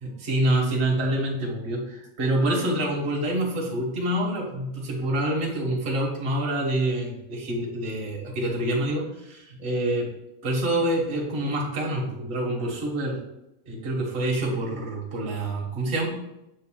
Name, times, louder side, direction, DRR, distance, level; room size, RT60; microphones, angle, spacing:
voice 1, 0.0-10.1 10.4-13.2 13.6-16.1, right 1 dB, 40° right, -3 dB, 0.9 m, -26 dB
6.8 x 6.5 x 2.3 m, 0.87 s
omnidirectional pair, 3.5 m